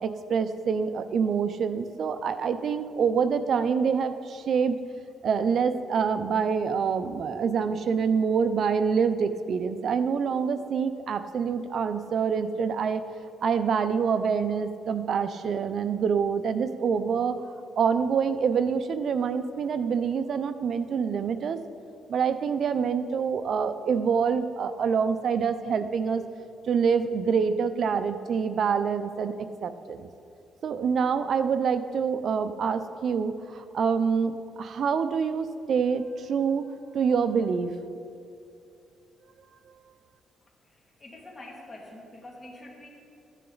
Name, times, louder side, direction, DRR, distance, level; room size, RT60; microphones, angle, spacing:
voice 1, 0.0-4.8 5.2-13.0 13.4-17.4 17.8-21.6 22.1-26.2 26.7-29.3 29.6-30.1 30.6-36.7 36.9-37.7, right 6 dB, 55° right, 10 dB, 0.6 m, -26 dB
voice 2, 40.7-42.9, left 1 dB, 25° left, -1 dB, 2.3 m, -46 dB
14.5 x 9.9 x 3.9 m, 2.6 s
cardioid pair, 115°, 0 cm